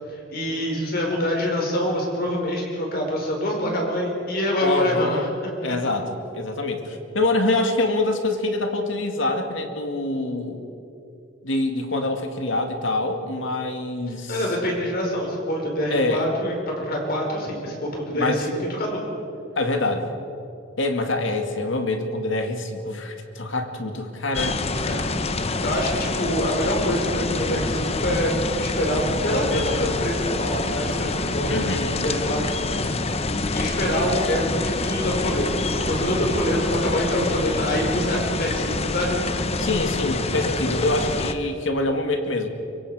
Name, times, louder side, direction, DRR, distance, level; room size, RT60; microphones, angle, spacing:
voice 1, 0.3-5.5 14.3-19.0 24.9-25.0 25.6-32.4 33.5-39.2, equal, 50° left, 0 dB, 5.0 m, -25 dB
voice 2, 4.6-5.3 5.6-10.7 11.4-14.5 15.9-16.3 18.1-18.5 19.6-20.1 20.8-24.6 31.5-32.1 39.6-42.5, left 2 dB, 75° left, 5 dB, 2.2 m, -25 dB
sound 1, 24.3-41.3, left 3 dB, 30° left, 0.8 m, -26 dB
24.5 x 23.5 x 5.0 m, 2.8 s
head